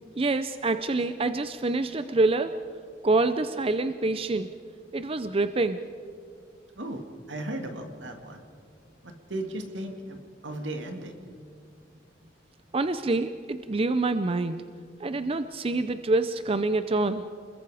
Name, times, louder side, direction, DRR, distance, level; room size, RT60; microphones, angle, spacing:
voice 1, 0.2-2.6 3.0-4.6 4.9-5.8 12.7-14.7 15.0-17.2, right 3 dB, 30° right, 11 dB, 0.5 m, -26 dB
voice 2, 7.3-8.4 9.0-11.1, right 1 dB, 80° right, 5 dB, 2.3 m, -36 dB
29.5 x 21.5 x 5.0 m, 2.3 s
head